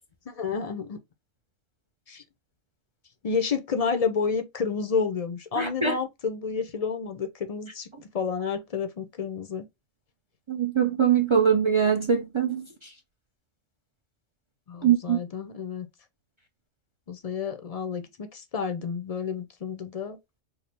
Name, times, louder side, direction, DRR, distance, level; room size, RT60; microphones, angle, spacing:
voice 1, 0.3-1.0 2.1-2.2 3.2-7.9 8.1-9.6 14.7-15.9 17.1-20.2, left 5 dB, 45° left, 0.5 m, -30 dB
voice 2, 5.6-6.0 10.5-12.7 14.8-15.2, right 7 dB, 45° right, 0.4 m, -22 dB
4.6 x 2.0 x 3.2 m
omnidirectional pair, 1.3 m